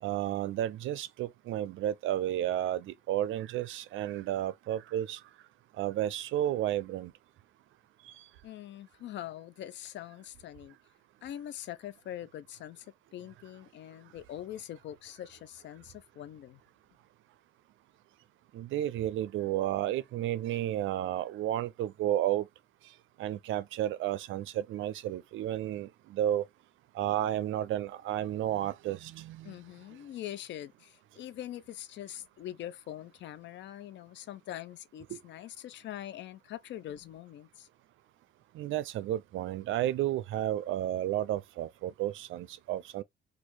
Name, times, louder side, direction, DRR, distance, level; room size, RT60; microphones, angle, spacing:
voice 1, 0.0-5.2 5.8-7.1 8.0-8.2 18.5-22.5 23.2-26.5 26.9-29.5 35.1-35.2 38.5-43.0, right 12 dB, 75° right, 0.5 m, -32 dB
voice 2, 8.4-10.7 11.2-12.9 13.1-16.6 29.4-37.7, left 12 dB, 65° left, 0.4 m, -43 dB
3.1 x 2.4 x 3.0 m
cardioid pair, 90°, 20 cm